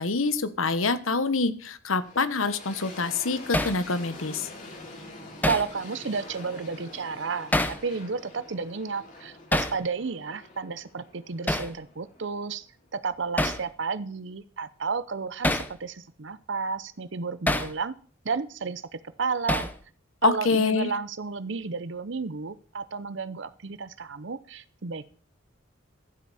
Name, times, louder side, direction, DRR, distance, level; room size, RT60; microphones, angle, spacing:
voice 1, 0.0-4.5 20.2-20.9, left 4 dB, 90° left, 12 dB, 1.2 m, -26 dB
sound 1, 2.0-12.9, left 2 dB, 40° left, 3.7 m, -46 dB
Hammer, 3.5-3.8 5.4-5.7 7.5-7.8 9.5-9.8 11.5-11.7 13.4-13.6 15.4-15.7 17.5-17.7 19.5-19.8, left 1 dB, 10° left, 0.9 m, -25 dB
voice 2, 5.4-12.7 12.9-17.9 18.2-19.7 20.2-25.2, right 5 dB, 60° right, 14 dB, 0.7 m, -32 dB
14.0 x 8.3 x 4.2 m, 0.43 s
head